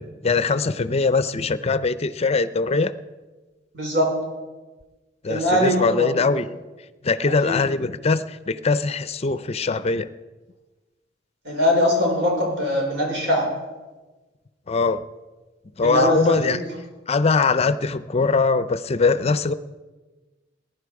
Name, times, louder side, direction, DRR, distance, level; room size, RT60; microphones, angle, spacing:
voice 1, 0.0-2.9 5.2-6.5 7.0-10.1 14.7-15.0 15.8-16.6 17.1-19.5, left 4 dB, 35° left, 14 dB, 0.5 m, -22 dB
voice 2, 3.7-4.2 5.3-6.3 7.4-7.6 11.4-13.5 15.8-16.6, equal, 75° right, -1 dB, 5.0 m, -22 dB
20.0 x 11.0 x 4.8 m, 1.2 s
head